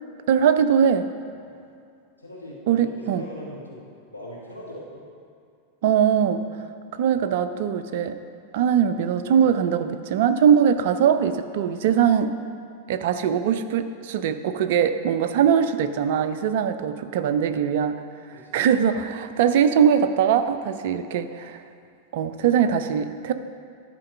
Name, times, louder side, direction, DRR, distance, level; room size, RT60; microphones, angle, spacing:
voice 1, 0.3-1.1 2.7-3.2 5.8-6.4 6.9-8.2 8.5-12.3 12.9-18.0 18.5-21.6 22.1-23.3, right 8 dB, 50° right, 10 dB, 0.4 m, -21 dB
voice 2, 2.2-3.9 4.1-5.0 18.3-18.7, left 1 dB, 85° left, -5 dB, 1.3 m, -40 dB
11.0 x 4.5 x 5.3 m, 2.4 s
figure-of-eight pair, 90°, 0 cm